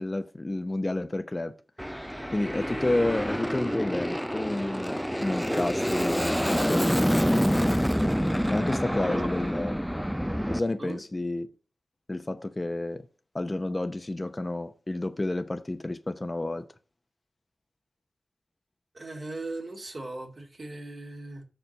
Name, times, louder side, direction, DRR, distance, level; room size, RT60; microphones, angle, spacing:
voice 1, 0.0-1.5 2.3-7.1 8.5-9.7 10.5-11.5 12.1-13.1 13.3-16.7, left 2 dB, 30° left, 0.7 m, -30 dB
Aircraft, 1.8-10.6, equal, ahead, 0.4 m, -27 dB
voice 2, 8.9-9.4 10.8-11.0 18.9-21.4, right 2 dB, 50° right, 2.4 m, -38 dB
6.8 x 4.4 x 6.6 m
wide cardioid pair, 65°, 0 cm